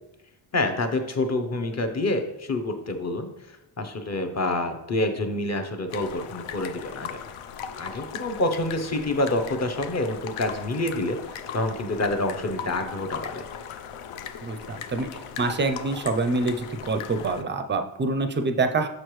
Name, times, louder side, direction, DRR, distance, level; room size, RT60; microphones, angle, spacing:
voice 1, 0.5-3.3 3.8-7.2 7.8-13.4, left 2 dB, 35° left, 6 dB, 0.7 m, -27 dB
sound 1, 5.9-17.4, left 8 dB, 85° left, 0.7 m, -38 dB
voice 2, 14.4-15.1 15.4-18.9, right 3 dB, 25° right, 7 dB, 0.4 m, -26 dB
6.5 x 6.4 x 3.1 m, 0.90 s
cardioid pair, 135°, 49 cm